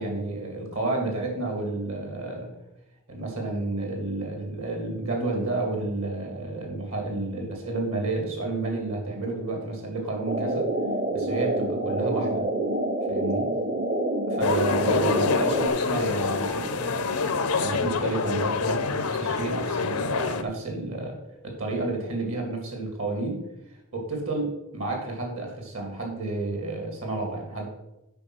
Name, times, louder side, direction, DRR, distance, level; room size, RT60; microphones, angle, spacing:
voice 1, 0.0-2.5 3.1-10.7 11.1-12.4 13.1-13.5 14.3-21.2 21.4-23.4 23.9-27.7, right 2 dB, 65° right, 1 dB, 2.5 m, -31 dB
sound 1, 10.3-15.7, right 1 dB, 40° right, 0.8 m, -27 dB
sound 2, 14.4-20.4, left 4 dB, 85° left, 0.7 m, -26 dB
8.8 x 5.3 x 6.3 m, 0.90 s
head